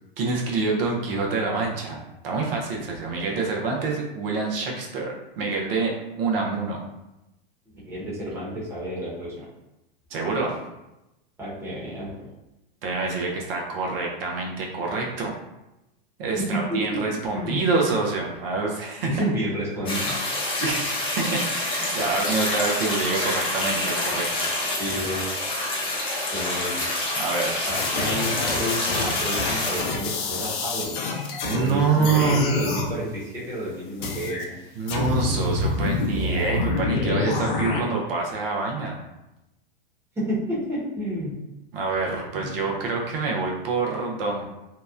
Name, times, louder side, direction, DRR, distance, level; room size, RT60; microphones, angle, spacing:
voice 1, 0.2-6.8 10.1-10.6 12.8-15.3 16.2-19.1 20.6-24.5 27.1-27.7 31.4-32.5 34.8-39.0 41.7-44.4, right 4 dB, 75° right, -1 dB, 0.7 m, -26 dB
voice 2, 7.8-9.5 11.4-12.3 16.4-17.0 17.3-17.7 19.1-20.2 24.8-25.2 26.3-26.9 27.7-31.0 31.5-34.4 40.1-41.4 42.3-42.5, equal, 10° right, -8 dB, 0.9 m, -30 dB
sound 1, 19.9-29.8, left 1 dB, 20° left, 0.6 m, -27 dB
sound 2, 27.7-31.7 32.0-32.9 34.0-34.4 34.9-37.8, left 3 dB, 65° left, 0.6 m, -27 dB
2.9 x 2.1 x 2.4 m, 0.95 s
hypercardioid pair, 125°, 29 cm